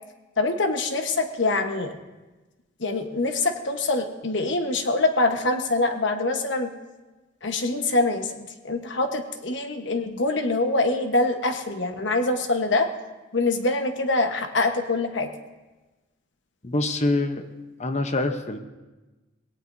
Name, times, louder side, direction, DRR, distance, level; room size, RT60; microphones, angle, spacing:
voice 1, 0.4-1.9 2.8-6.7 7.4-12.9 13.3-15.3, left 2 dB, 65° left, 6 dB, 1.2 m, -24 dB
voice 2, 16.6-17.4 17.8-18.6, left 2 dB, 35° left, 7 dB, 0.8 m, -25 dB
19.5 x 17.5 x 2.7 m, 1.2 s
head